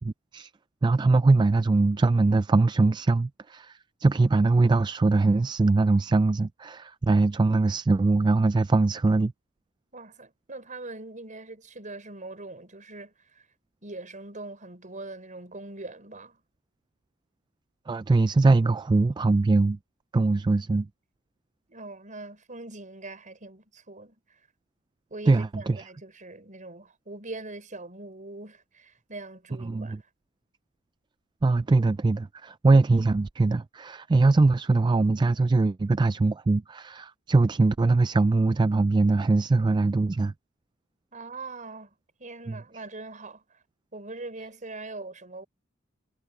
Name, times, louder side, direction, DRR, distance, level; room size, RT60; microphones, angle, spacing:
voice 1, 0.0-0.5 0.8-9.3 17.9-19.8 20.1-20.9 25.3-25.8 29.6-30.0 31.4-40.3 42.5-42.6, right 3 dB, 20° right, 0.3 m, -22 dB
voice 2, 9.9-13.5 13.8-16.4 21.7-24.2 25.1-30.0 41.1-41.9 42.2-43.6 43.9-45.4, right 2 dB, 40° right, 5.8 m, -42 dB
head